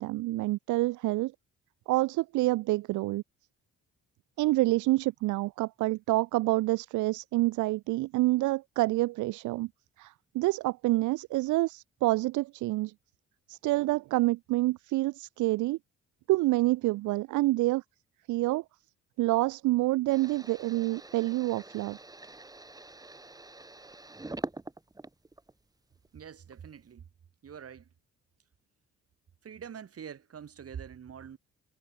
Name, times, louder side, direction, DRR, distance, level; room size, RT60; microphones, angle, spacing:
voice 1, 0.0-1.3 1.9-3.2 4.4-9.7 10.0-12.9 13.5-15.8 16.3-17.8 18.3-18.6 19.2-22.0, right 19 dB, 80° right, 0.5 m, -27 dB
sound 1, 20.1-25.6 26.1-26.8, right 2 dB, 10° right, 1.2 m, -44 dB
voice 2, 26.1-27.1 27.4-27.9 29.4-31.4, right 8 dB, 50° right, 4.5 m, -45 dB
cardioid pair, 90°, 30 cm